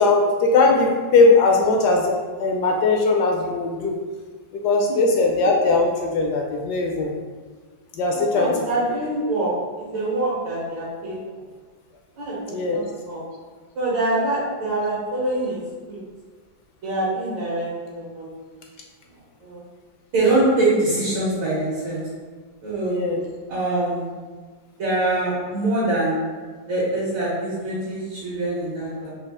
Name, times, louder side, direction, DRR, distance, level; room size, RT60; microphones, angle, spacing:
voice 1, 0.0-2.1 2.4-4.0 4.5-7.1 7.9-8.5 12.5-12.8 22.8-23.2, left 3 dB, 70° left, 1 dB, 1.0 m, -19 dB
voice 2, 8.3-9.5 9.8-11.2 12.2-13.2 13.8-15.6 15.9-16.0 16.8-18.2 19.4-19.6 20.1-22.0 22.6-23.0 23.5-24.1 24.8-26.2 26.7-29.1, right 2 dB, 80° right, -9 dB, 2.0 m, -24 dB
5.2 x 2.4 x 3.5 m, 1.4 s
omnidirectional pair, 2.1 m